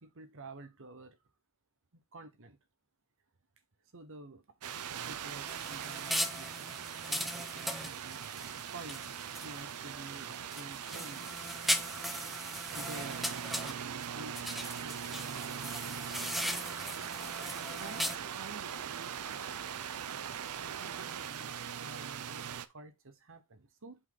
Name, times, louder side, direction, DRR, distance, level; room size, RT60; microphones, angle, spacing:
voice 1, 0.0-1.2 2.1-2.6 3.9-4.4 5.1-11.6 12.7-14.4 14.8-16.3 17.6-19.1 20.6-24.0, right 2 dB, 60° right, 1.1 m, -50 dB
sound 1, 4.6-22.7, right 8 dB, 80° right, 0.6 m, -41 dB
sound 2, 5.5-9.7 10.1-14.1 14.3-18.2, equal, ahead, 0.6 m, -38 dB
7.9 x 4.2 x 3.9 m
head